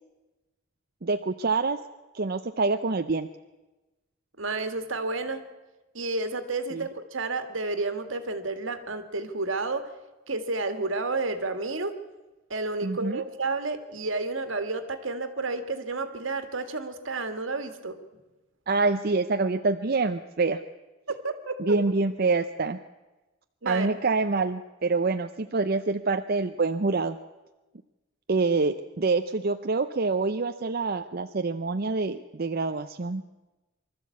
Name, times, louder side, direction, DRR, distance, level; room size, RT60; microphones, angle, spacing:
voice 1, 1.0-1.8 2.1-3.3 6.7-6.8 12.8-13.2 18.7-20.6 21.6-22.8 23.7-27.2 28.3-33.2, right 3 dB, 50° right, 7 dB, 0.6 m, -26 dB
voice 2, 4.4-5.4 5.9-9.9 10.3-11.9 12.5-18.0 21.1-21.8 23.6-23.9, right 3 dB, 75° right, 8 dB, 1.9 m, -31 dB
24.5 x 13.0 x 8.4 m, 1.1 s
head